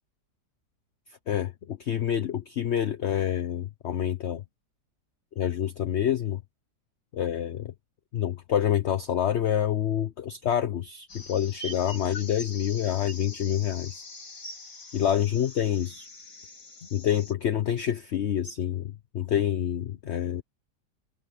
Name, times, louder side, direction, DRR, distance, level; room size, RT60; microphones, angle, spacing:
voice 1, 1.3-4.4 5.4-6.4 7.1-7.7 8.1-14.0 14.9-16.1 16.9-20.4, left 10 dB, 50° left, 0.9 m, -27 dB
sound 1, 11.1-17.3, left 2 dB, 75° left, 3.9 m, -43 dB
omnidirectional pair, 1.8 m